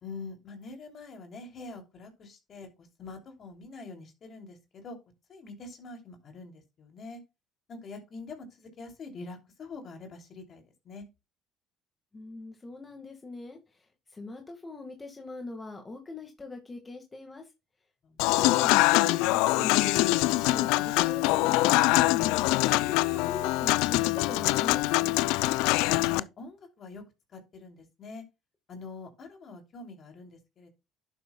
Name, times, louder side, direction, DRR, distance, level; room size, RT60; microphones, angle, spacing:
voice 1, 0.0-5.0 5.3-7.2 7.7-11.0 18.0-18.3 25.8-27.0 27.3-28.2 28.7-30.7, left 3 dB, 50° left, 2.9 m, -45 dB
voice 2, 12.1-17.5 18.2-20.0 20.3-21.9 22.7-25.3, left 3 dB, 25° left, 1.8 m, -42 dB
Human voice / Acoustic guitar / Piano, 18.2-26.2, left 20 dB, 75° left, 0.3 m, -24 dB
11.5 x 7.2 x 2.3 m
hypercardioid pair, 70°, 0 cm